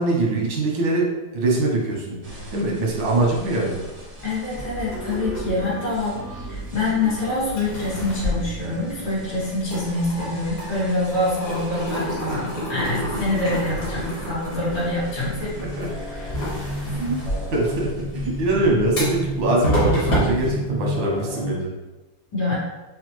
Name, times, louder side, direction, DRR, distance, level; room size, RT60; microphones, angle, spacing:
voice 1, 0.0-2.2 2.5-3.8 15.4-15.9 16.9-17.2 17.5-21.7, right 2 dB, 90° right, -1 dB, 1.6 m, -23 dB
sound 1, 2.2-21.5, equal, 40° right, 0.5 m, -34 dB
voice 2, 4.2-15.5 16.0-17.1 22.3-22.5, left 2 dB, 80° left, -8 dB, 2.3 m, -26 dB
sound 2, 4.6-7.1 7.5-9.3 9.6-21.2, equal, 55° left, 1.6 m, -29 dB
4.9 x 2.3 x 3.0 m, 1.1 s
omnidirectional pair, 2.0 m